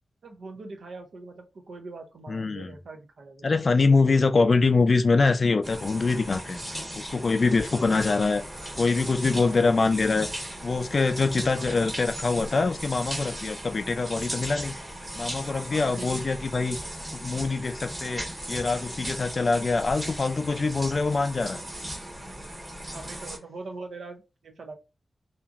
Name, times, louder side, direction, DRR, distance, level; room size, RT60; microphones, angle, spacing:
voice 1, 0.2-3.8 7.7-8.1 9.4-9.6 11.5-11.8 15.5-16.2 22.9-24.8, right 3 dB, 85° right, 0.6 m, -42 dB
voice 2, 2.3-2.7 3.4-6.6 6.9-8.4 8.8-10.3 10.6-14.7 15.2-16.8 17.1-21.6, left 4 dB, 45° left, 0.3 m, -24 dB
sound 1, 5.6-23.4, right 1 dB, 20° right, 1.0 m, -37 dB
2.8 x 2.5 x 2.4 m
wide cardioid pair, 150°, 0 cm